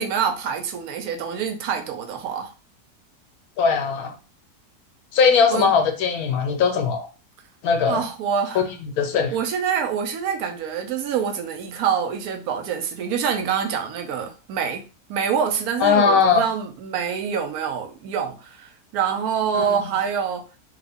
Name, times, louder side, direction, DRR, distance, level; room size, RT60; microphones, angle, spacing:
voice 1, 0.0-2.5 5.5-5.7 7.8-8.6 9.3-14.8 15.1-20.5, right 7 dB, 75° right, 1.1 m, -26 dB
voice 2, 3.6-4.1 5.1-7.1 7.6-8.0 8.5-8.6 9.0-9.4 15.8-16.4 19.5-19.8, left 5 dB, 75° left, 1.1 m, -19 dB
3.5 x 2.4 x 3.4 m
omnidirectional pair, 1.6 m